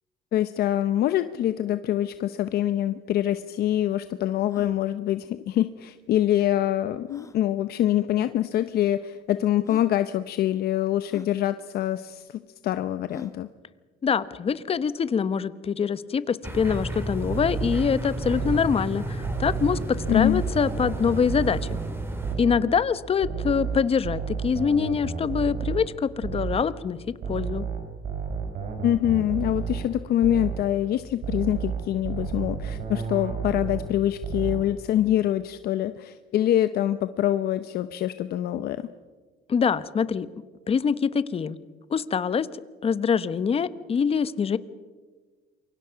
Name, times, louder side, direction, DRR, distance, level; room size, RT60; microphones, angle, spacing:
voice 1, 0.3-13.5 20.1-20.4 28.8-38.8, left 12 dB, 70° left, 11 dB, 0.8 m, -25 dB
sound 1, 2.9-3.0 3.2-3.3 3.8-3.9 4.4-4.8 6.1-6.2 7.1-7.4 8.4-8.5 9.2-9.3 9.6-9.9 11.1-11.3 13.1-13.4, left 3 dB, 20° left, 1.5 m, -44 dB
voice 2, 14.0-19.8 20.1-21.8 22.4-27.7 39.5-40.3 40.7-41.6 41.9-42.5 42.8-44.6, left 6 dB, 35° left, 15 dB, 1.1 m, -24 dB
sound 2, 16.4-22.4, right 1 dB, 15° right, 3.6 m, -32 dB
sound 3, 17.3-18.7 19.2-22.0 22.2-22.7 23.2-26.7 27.2-30.0 30.2-30.7 31.2-34.0 34.2-34.7, right 6 dB, 55° right, 4.7 m, -32 dB
28.0 x 24.0 x 5.9 m, 1.4 s
cardioid pair, 110°, 17 cm